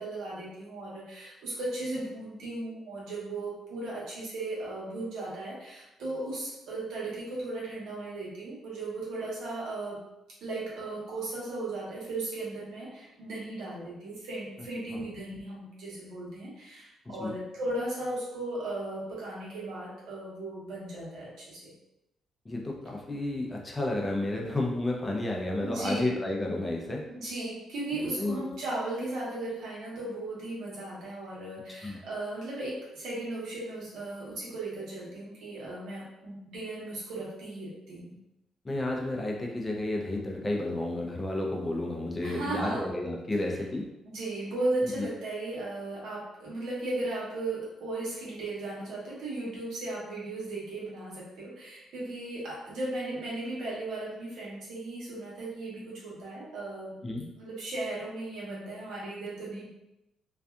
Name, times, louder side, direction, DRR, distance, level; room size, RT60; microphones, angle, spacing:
voice 1, 0.0-10.0 10.4-21.7 24.4-24.5 25.6-26.2 27.1-38.2 42.2-42.9 44.0-56.9 57.4-59.7, right 2 dB, 80° right, -6 dB, 1.1 m, -36 dB
voice 2, 22.5-27.1 27.9-28.6 31.8-32.0 38.6-43.9 44.8-45.1 57.0-57.3, left 2 dB, 20° left, -1 dB, 0.5 m, -32 dB
2.6 x 2.3 x 2.3 m, 0.89 s
cardioid pair, 90°, 0 cm